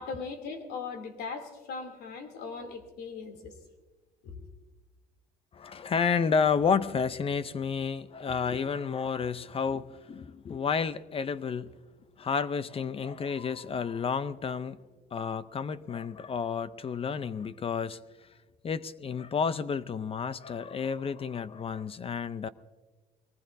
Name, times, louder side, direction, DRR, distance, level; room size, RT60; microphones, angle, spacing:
voice 1, 0.0-3.5 4.2-4.5, left 4 dB, 75° left, 5 dB, 2.8 m, -39 dB
voice 2, 5.5-11.7 12.2-14.8 15.1-18.0 18.6-22.5, left 6 dB, 35° left, 15 dB, 0.6 m, -31 dB
23.0 x 19.0 x 2.7 m, 1.3 s
cardioid pair, 110°, 17 cm